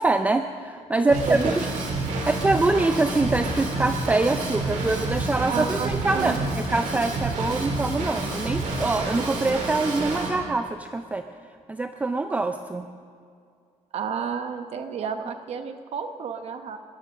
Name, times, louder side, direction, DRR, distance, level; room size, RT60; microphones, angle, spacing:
voice 1, 0.0-1.5 2.3-11.2 11.7-12.9, right 3 dB, 10° right, 7 dB, 0.4 m, -24 dB
voice 2, 1.1-1.6 5.5-6.4 13.9-16.8, right 6 dB, 55° right, 7 dB, 1.0 m, -31 dB
Drum kit / Drum, 1.1-10.3, right 2 dB, 85° right, 3.6 m, -29 dB
19.5 x 11.5 x 6.5 m, 2.3 s
cardioid pair, 175°, 13 cm